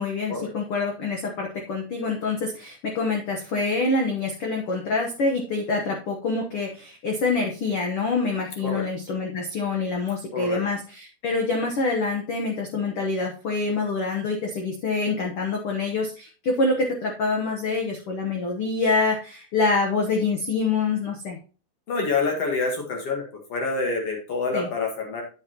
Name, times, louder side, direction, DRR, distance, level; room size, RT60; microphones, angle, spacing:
voice 1, 0.0-21.4 24.5-24.7, left 3 dB, 85° left, 1 dB, 1.2 m, -26 dB
voice 2, 10.3-10.6 21.9-23.2 23.5-25.2, left 3 dB, 50° left, 1 dB, 2.2 m, -27 dB
9.6 x 7.5 x 2.9 m, 0.36 s
omnidirectional pair, 4.2 m